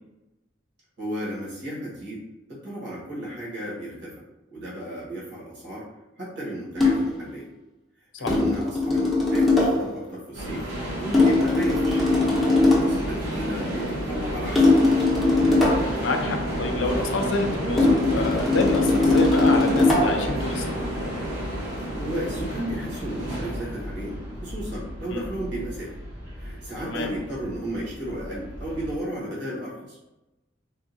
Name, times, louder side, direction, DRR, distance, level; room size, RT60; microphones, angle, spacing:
voice 1, 1.0-2.2 2.5-4.1 4.5-5.9 6.2-7.5 8.2-10.6 11.0-12.1 12.7-15.1 22.0-26.0 26.4-30.0, right 1 dB, 65° right, -6 dB, 1.4 m, -33 dB
sound 1, 6.8-7.2 8.3-9.9 11.1-13.0 14.6-16.0 17.8-20.3, left 2 dB, ahead, 0.7 m, -20 dB
sound 2, 10.3-28.9, equal, 85° right, 1.2 m, -31 dB
voice 2, 16.0-20.8 25.1-25.3 26.8-27.1, left 3 dB, 75° left, 5 dB, 0.5 m, -28 dB
3.6 x 2.4 x 2.6 m, 0.98 s
head